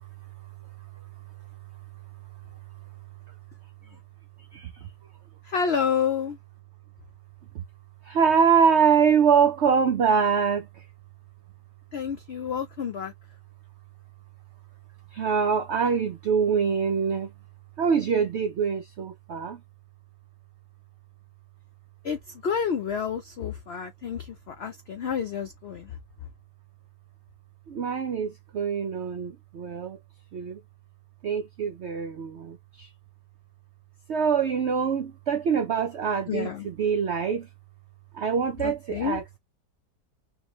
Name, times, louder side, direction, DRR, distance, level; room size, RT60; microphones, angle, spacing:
voice 1, 4.5-4.9 7.5-7.6 8.0-10.9 15.1-17.3 17.8-19.6 27.7-30.0 30.3-30.6 31.2-32.9 34.1-37.5 38.1-39.4, right 6 dB, 75° right, 0.6 m, -24 dB
voice 2, 5.4-6.4 11.9-13.1 22.0-26.0 36.3-36.7 38.6-39.2, left 7 dB, 80° left, 0.5 m, -29 dB
3.6 x 2.8 x 3.1 m
omnidirectional pair, 1.8 m